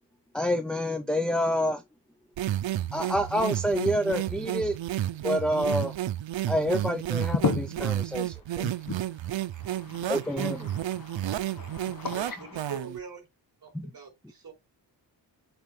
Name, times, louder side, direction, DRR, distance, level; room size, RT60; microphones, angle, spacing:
voice 1, 0.3-1.8 2.9-4.8 5.2-5.9 6.5-7.4 7.8-8.3 10.1-10.7 13.7-13.9, equal, ahead, 0.5 m, -27 dB
sound 1, 2.4-13.0, right 13 dB, 80° right, 0.7 m, -31 dB
voice 2, 7.2-7.9 8.6-9.0 9.7-10.1 10.6-12.4, left 5 dB, 50° left, 1.3 m, -33 dB
voice 3, 12.1-13.2 13.6-14.5, right 6 dB, 50° right, 3.6 m, -42 dB
8.0 x 4.4 x 3.2 m
wide cardioid pair, 100°, 44 cm